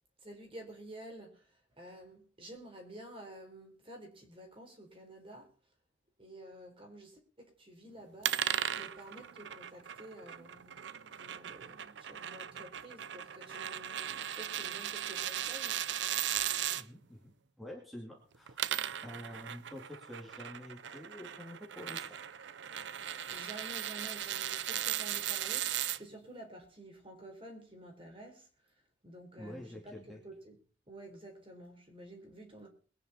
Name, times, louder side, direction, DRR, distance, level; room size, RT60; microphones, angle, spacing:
voice 1, 0.2-5.5 6.2-8.4 8.8-15.9 23.3-28.7 29.0-30.6 30.9-32.7, right 1 dB, 30° right, 4.2 m, -51 dB
sound 1, 8.2-16.8 18.3-26.0, right 11 dB, 75° right, 0.6 m, -37 dB
voice 2, 16.7-18.6 19.0-22.2 29.4-30.2, left 1 dB, ahead, 2.6 m, -48 dB
22.0 x 9.8 x 4.4 m
head